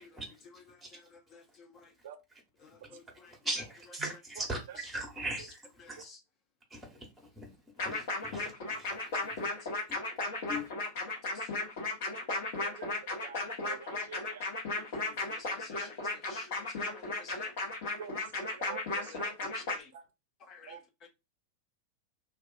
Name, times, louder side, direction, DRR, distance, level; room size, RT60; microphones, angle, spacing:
voice 1, 0.0-1.9 2.6-3.4 4.7-4.9 5.2-5.5 5.8-6.2 9.2-9.8 11.2-11.6 13.7-13.8 14.8-17.5 19.1-19.9 20.4-21.1, left 4 dB, 35° left, 0.6 m, -54 dB
voice 2, 3.4-6.0 6.7-7.5 7.8-9.5 10.5-10.7, right 1 dB, 5° right, 1.0 m, -40 dB
Alien Jams, 7.8-19.8, left 2 dB, 50° left, 1.0 m, -35 dB
voice 3, 12.5-14.4 18.0-19.3 19.7-20.0 20.7-20.8, right 8 dB, 55° right, 0.5 m, -47 dB
2.4 x 2.3 x 2.4 m
figure-of-eight pair, 90°, 0 cm